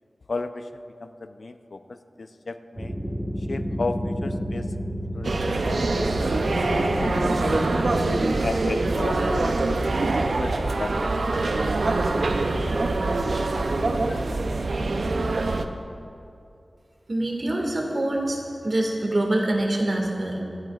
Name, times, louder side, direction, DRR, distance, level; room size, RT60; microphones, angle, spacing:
voice 1, 0.3-2.9 3.4-4.7 5.1-6.1 6.4-7.7 8.4-9.6 10.0-11.2 14.0-14.2, left 3 dB, 70° left, 8 dB, 0.5 m, -34 dB
sound 1, 2.8-8.2, equal, 20° right, 1.3 m, -30 dB
sound 2, 5.2-15.7, right 2 dB, 75° right, 0.6 m, -24 dB
voice 2, 17.1-20.4, right 1 dB, 50° right, 0 dB, 1.9 m, -25 dB
26.5 x 9.2 x 2.4 m, 2.5 s
wide cardioid pair, 75°, 0 cm